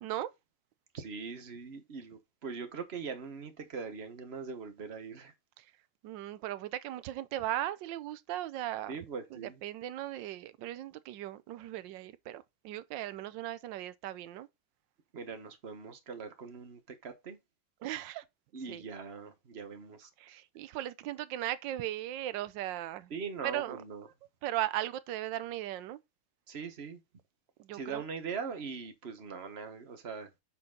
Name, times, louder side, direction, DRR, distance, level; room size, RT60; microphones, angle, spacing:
voice 1, 0.9-5.3 8.9-9.6 15.1-17.4 18.5-20.1 23.1-24.1 26.5-27.0 27.7-30.3, right 5 dB, 35° right, 1.3 m, -41 dB
voice 2, 6.0-8.9 9.3-14.5 17.8-18.2 18.7-18.8 20.2-23.1 23.4-23.8 24.4-26.0 27.6-28.0, right 14 dB, 70° right, 1.3 m, -37 dB
8.7 x 4.4 x 3.9 m
omnidirectional pair, 2.3 m